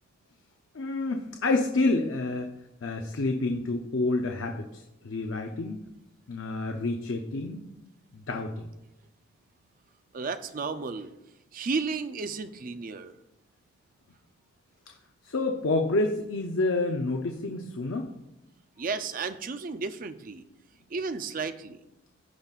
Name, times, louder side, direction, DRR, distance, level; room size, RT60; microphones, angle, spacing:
voice 1, 0.7-2.5 2.8-5.8 6.3-7.7 8.1-8.7 14.9-15.0 15.2-18.1, left 2 dB, 80° left, 4 dB, 0.6 m, -28 dB
voice 2, 10.1-11.1 11.5-13.1 18.8-20.4 20.9-21.8, right 4 dB, 45° right, 10 dB, 0.5 m, -33 dB
16.0 x 5.4 x 2.4 m, 0.91 s
head